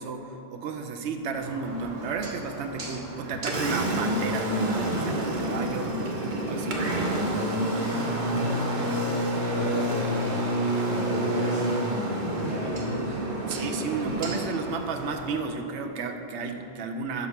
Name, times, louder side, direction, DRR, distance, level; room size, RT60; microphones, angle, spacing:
voice 1, 0.0-5.9 6.4-6.8 13.5-17.3, right 4 dB, 85° right, 5 dB, 0.9 m, -32 dB
Engine, 1.4-15.4, right 1 dB, 50° right, 0.9 m, -29 dB
voice 2, 7.9-10.5 10.9-11.8 12.2-13.2, left 1 dB, 60° left, -9 dB, 1.7 m, -33 dB
6.1 x 4.1 x 5.7 m, 2.9 s
omnidirectional pair, 1.1 m